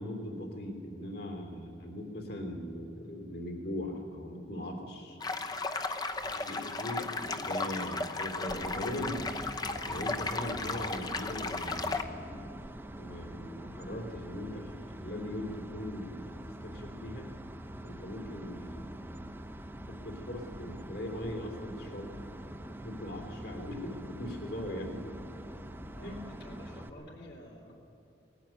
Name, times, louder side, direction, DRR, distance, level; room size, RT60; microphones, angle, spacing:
voice 1, 0.0-5.2 6.5-9.2 9.9-12.4 13.0-14.7 15.0-16.2 16.6-17.3 17.8-19.0 19.9-25.1 26.0-26.2, left 1 dB, 60° left, 3 dB, 3.2 m, -40 dB
sound 1, 5.2-12.0, left 3 dB, 25° left, 0.9 m, -35 dB
voice 2, 6.2-6.5 26.0-27.7, left 1 dB, 80° left, -4 dB, 2.6 m, -50 dB
sound 2, 8.5-26.9, right 1 dB, 10° right, 0.9 m, -45 dB
19.0 x 15.0 x 9.1 m, 3.0 s
head